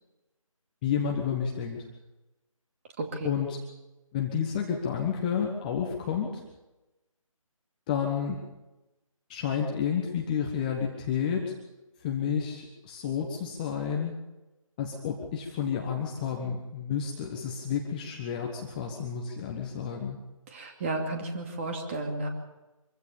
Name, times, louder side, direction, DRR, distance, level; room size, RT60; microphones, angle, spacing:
voice 1, 0.8-1.9 3.2-3.6 4.1-6.4 7.9-8.4 9.3-11.5 12.0-14.1 14.8-20.2, left 7 dB, 15° left, 1 dB, 1.3 m, -30 dB
voice 2, 3.0-3.3 20.5-22.3, right 2 dB, 20° right, 3 dB, 2.5 m, -33 dB
24.5 x 15.5 x 7.0 m, 1.0 s
figure-of-eight pair, 160°, 18 cm